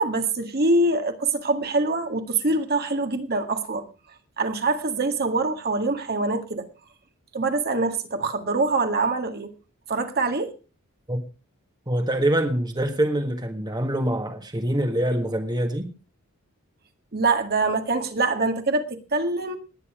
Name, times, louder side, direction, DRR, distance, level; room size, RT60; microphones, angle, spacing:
voice 1, 0.0-3.8 4.4-6.7 7.3-9.5 9.9-10.5 17.1-19.6, right 3 dB, 45° right, 1.8 m, -24 dB
voice 2, 11.9-15.9, right 1 dB, 20° right, 1.5 m, -25 dB
19.0 x 9.6 x 4.9 m
head